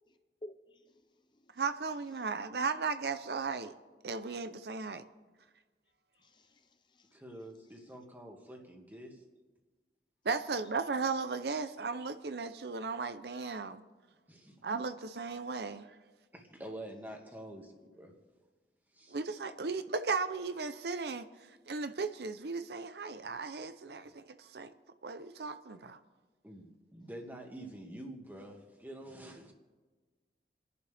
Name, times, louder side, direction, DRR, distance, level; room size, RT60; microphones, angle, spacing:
voice 1, 0.4-1.6 2.1-2.3 4.8-5.0 6.1-7.8 25.3-25.4 25.7-25.9 27.0-27.1, left 1 dB, 25° left, 7 dB, 0.6 m, -56 dB
voice 2, 1.6-3.7 4.0-5.0 10.2-13.8 14.6-15.9 19.1-21.3 21.7-24.7 25.0-26.0, right 4 dB, 70° right, 10 dB, 0.7 m, -36 dB
voice 3, 7.1-9.2 14.3-14.5 16.3-18.1 18.9-19.2 26.4-29.5, right 1 dB, 10° right, 1 dB, 1.8 m, -47 dB
29.5 x 11.0 x 3.5 m, 1.3 s
head